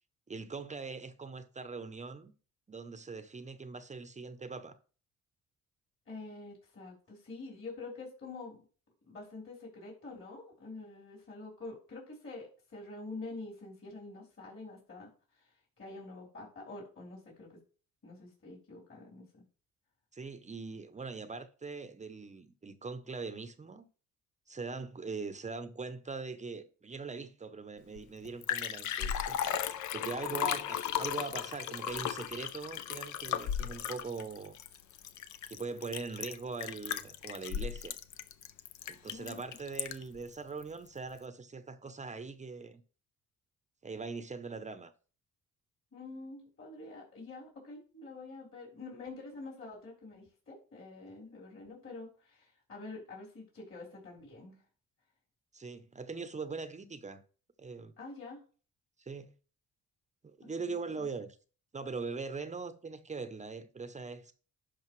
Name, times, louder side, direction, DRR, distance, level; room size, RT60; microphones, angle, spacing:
voice 1, 0.3-2.3 2.7-4.8 20.1-23.9 24.5-29.4 29.9-34.5 35.5-38.0 38.9-42.8 43.8-44.9 55.5-57.2 57.6-57.9 59.0-59.3 60.2-61.4 61.7-64.3, right 4 dB, 25° right, 0.7 m, -41 dB
voice 2, 6.1-8.6 9.1-15.1 15.3-17.6 18.0-19.4 39.1-39.4 45.9-54.6 58.0-58.4 60.4-61.1, left 3 dB, 45° left, 3.8 m, -47 dB
Liquid, 28.0-28.1 28.2-40.2 40.6-40.7, left 10 dB, 75° left, 0.6 m, -36 dB
11.0 x 5.1 x 3.1 m
cardioid pair, 90°, 30 cm